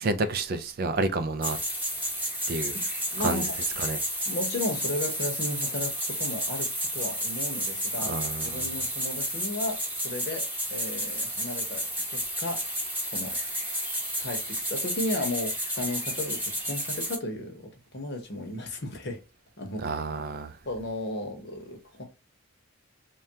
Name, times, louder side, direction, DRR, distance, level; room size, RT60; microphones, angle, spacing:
voice 1, 0.0-1.6 2.5-2.7 3.2-3.5 3.8-4.0 8.1-8.6 19.8-20.6, right 3 dB, 45° right, 0.3 m, -29 dB
sound 1, 1.4-17.2, equal, 10° right, 0.9 m, -31 dB
voice 2, 3.1-3.4 4.3-8.2 8.4-12.6 12.9-13.4 13.6-13.8 14.2-19.2 19.6-19.9 20.6-22.0, left 1 dB, 50° left, 0.8 m, -34 dB
3.3 x 2.3 x 2.7 m
head